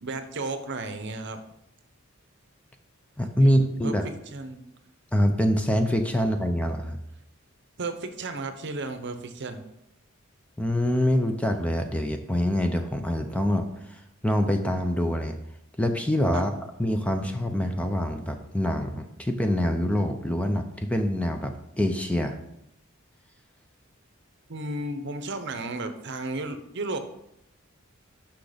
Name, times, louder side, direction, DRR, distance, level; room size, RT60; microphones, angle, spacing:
voice 1, 0.0-1.4 3.4-4.6 7.8-9.6 16.3-16.4 24.5-27.0, right 2 dB, 55° right, 8 dB, 0.8 m, -34 dB
voice 2, 3.2-4.1 5.1-7.0 10.6-15.4 15.8-16.5 16.8-22.4, equal, 5° left, 5 dB, 0.5 m, -25 dB
6.3 x 5.9 x 5.0 m, 0.80 s
head